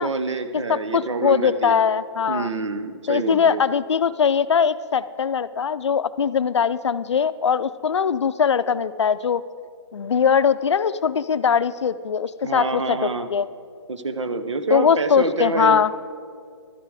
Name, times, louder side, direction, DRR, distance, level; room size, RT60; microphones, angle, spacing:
voice 1, 0.0-1.8 2.3-3.6 12.4-13.3 13.9-15.8, right 3 dB, 85° right, 9 dB, 1.0 m, -26 dB
voice 2, 0.5-2.5 3.1-9.4 9.9-13.5 14.7-15.9, left 7 dB, 75° left, 14 dB, 0.5 m, -21 dB
12.0 x 10.0 x 4.8 m, 2.2 s
hypercardioid pair, 175°, 15 cm